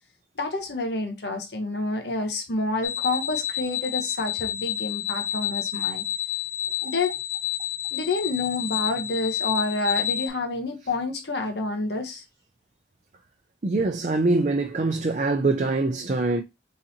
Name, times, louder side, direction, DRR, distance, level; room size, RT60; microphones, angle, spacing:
voice 1, 0.4-6.0 6.8-7.1 7.9-12.2, left 2 dB, 70° left, 1.0 m, -28 dB
sound 1, 2.8-10.3, left 11 dB, 45° left, 0.7 m, -29 dB
voice 2, 13.6-16.4, right 3 dB, 45° right, 0.5 m, -24 dB
4.1 x 3.9 x 2.8 m
head